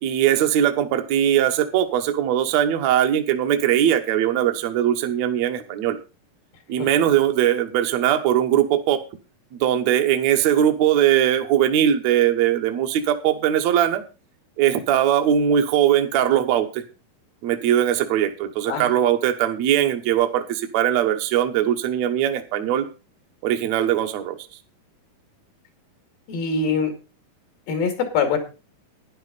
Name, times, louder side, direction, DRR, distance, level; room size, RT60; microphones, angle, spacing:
voice 1, 0.0-6.0 6.7-9.0 9.5-14.0 14.6-16.8 17.4-22.9 23.4-24.4, right 10 dB, 65° right, 5 dB, 1.9 m, -20 dB
voice 2, 26.3-26.9 27.7-28.4, left 5 dB, 80° left, 6 dB, 4.1 m, -23 dB
13.0 x 10.0 x 4.0 m, 0.31 s
omnidirectional pair, 4.1 m